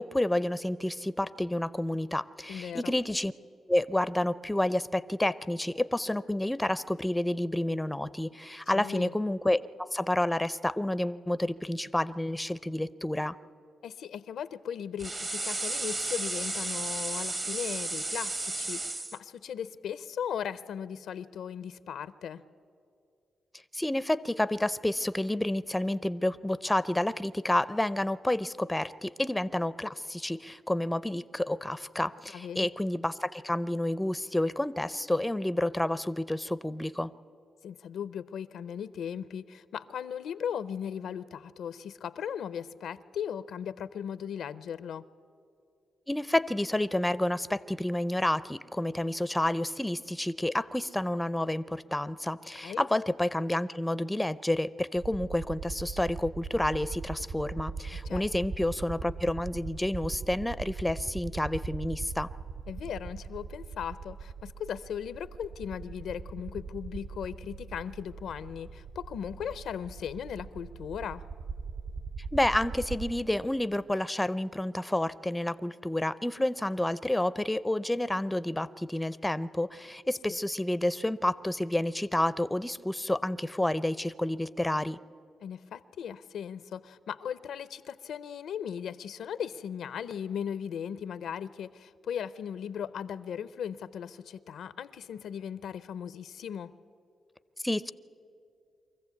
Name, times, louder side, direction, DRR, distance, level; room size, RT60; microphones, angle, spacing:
voice 1, 0.0-3.3 3.7-13.4 23.7-37.1 46.1-62.3 72.3-85.0 97.6-97.9, left 1 dB, 10° left, 16 dB, 0.5 m, -29 dB
voice 2, 2.5-2.9 8.7-9.1 13.8-22.4 32.3-32.7 37.6-45.0 52.6-52.9 57.9-58.4 62.7-71.2 80.3-80.4 85.4-96.7, left 8 dB, 85° left, 16 dB, 0.5 m, -37 dB
sound 1, 15.0-19.2, right 2 dB, 35° right, 1.0 m, -33 dB
sound 2, 55.0-73.1, right 4 dB, 50° right, 4.1 m, -40 dB
24.0 x 14.5 x 8.3 m, 2.5 s
cardioid pair, 75°, 0 cm